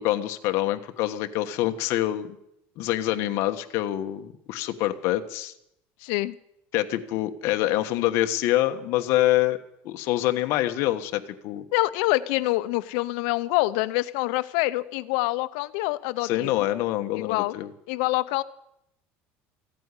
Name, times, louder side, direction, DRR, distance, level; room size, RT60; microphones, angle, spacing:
voice 1, 0.0-2.4 2.8-5.5 6.7-9.6 9.8-11.6 16.2-17.7, left 14 dB, 55° left, 8 dB, 1.3 m, -25 dB
voice 2, 6.0-6.4 11.7-16.7 17.1-17.6 17.9-18.4, left 19 dB, 80° left, 15 dB, 0.7 m, -26 dB
15.5 x 9.1 x 9.8 m, 0.78 s
cardioid pair, 165°, 5 cm